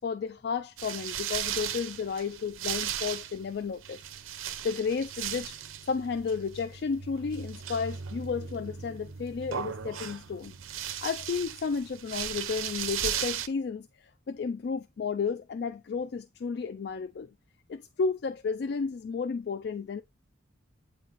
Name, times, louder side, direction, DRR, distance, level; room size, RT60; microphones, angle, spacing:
voice 1, 0.0-4.0 4.6-5.6 5.8-10.5 11.0-17.3 17.7-20.0, left 5 dB, 55° left, 0.3 m, -32 dB
sound 1, 0.8-13.5, right 9 dB, 90° right, 0.7 m, -37 dB
8.4 x 4.0 x 3.0 m
head